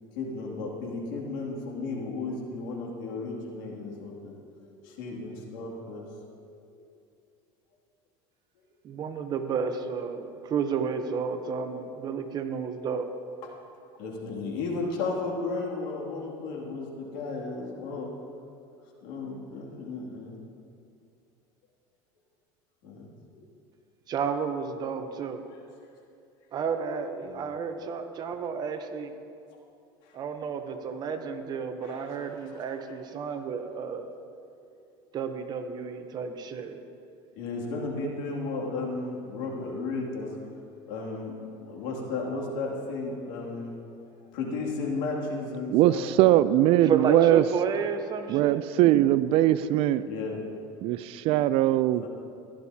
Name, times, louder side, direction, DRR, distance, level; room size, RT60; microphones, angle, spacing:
voice 1, 0.1-4.3 4.7-6.1 6.7-6.8 13.9-18.1 18.8-20.4 22.8-23.4 27.2-27.4 30.0-30.2 31.8-32.8 37.4-40.3 40.9-46.6 50.1-50.5 52.0-52.1, left 3 dB, 75° left, -2 dB, 2.5 m, -34 dB
voice 2, 8.8-13.1 24.1-25.4 26.5-29.1 30.1-34.1 35.1-36.8 37.7-38.1 46.8-48.6, right 6 dB, 35° right, 7 dB, 0.8 m, -31 dB
voice 3, 45.7-47.4 48.3-50.0 50.8-52.0, right 14 dB, 55° right, 15 dB, 0.4 m, -21 dB
15.5 x 11.5 x 2.8 m, 2.5 s
supercardioid pair, 130°, 12 cm